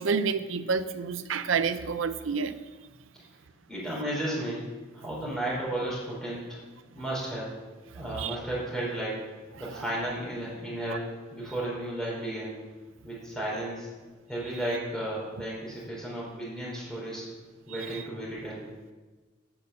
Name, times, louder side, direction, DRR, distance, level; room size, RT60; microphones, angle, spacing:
voice 1, 0.0-2.6 8.2-8.4 10.9-11.0, right 5 dB, 90° right, 12 dB, 0.6 m, -28 dB
voice 2, 3.7-4.6 4.9-6.6 6.9-7.5 7.9-9.2 9.6-12.6 13.0-13.9 14.3-17.2 17.7-18.6, right 1 dB, 5° left, -6 dB, 3.9 m, -33 dB
8.8 x 6.6 x 6.7 m, 1.3 s
head